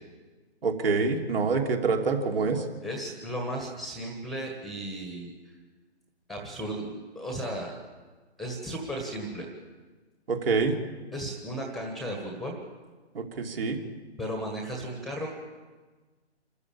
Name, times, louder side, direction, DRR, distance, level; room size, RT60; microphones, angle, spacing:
voice 1, 0.6-2.6 10.3-10.8 13.1-13.8, right 4 dB, 55° right, 3 dB, 3.2 m, -26 dB
voice 2, 2.8-5.6 6.3-7.7 8.4-9.5 11.1-12.6 14.2-15.3, right 1 dB, ahead, 1 dB, 1.5 m, -35 dB
27.0 x 14.0 x 8.7 m, 1.3 s
figure-of-eight pair, 150°, 34 cm